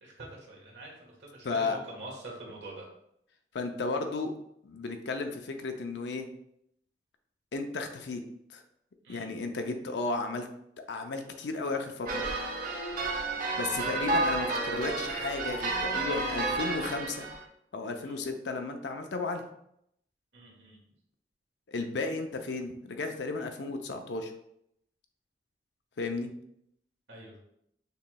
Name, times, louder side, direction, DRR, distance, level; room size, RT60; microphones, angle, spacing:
voice 1, 0.0-2.9 9.1-9.3 13.0-13.4 18.0-18.2 20.3-20.8 27.1-27.4, right 2 dB, 75° right, -2 dB, 1.4 m, -45 dB
voice 2, 1.4-1.8 3.5-4.3 4.6-6.3 7.5-8.2 8.5-8.6 9.1-10.5 10.9-12.3 13.6-17.3 17.7-19.4 21.7-24.3 26.0-26.3, left 3 dB, 75° left, 5 dB, 0.5 m, -34 dB
sound 1, 12.1-17.4, right 2 dB, 50° right, 0.8 m, -31 dB
6.6 x 3.0 x 2.2 m, 0.75 s
head